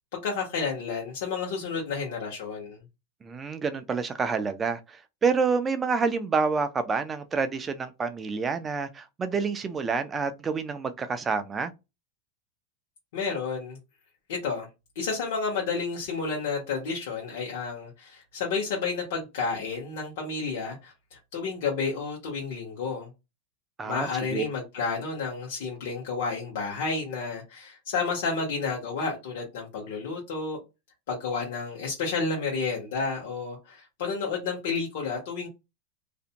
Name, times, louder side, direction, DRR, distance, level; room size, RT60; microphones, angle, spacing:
voice 1, 0.2-2.8 13.1-13.8 14.3-14.7 15.0-23.1 23.8-30.6 31.1-35.5, left 4 dB, 65° left, 0.9 m, -31 dB
voice 2, 3.2-11.7 23.8-24.4, right 5 dB, 15° right, 0.3 m, -28 dB
2.5 x 2.1 x 2.7 m
supercardioid pair, 165°, 0 cm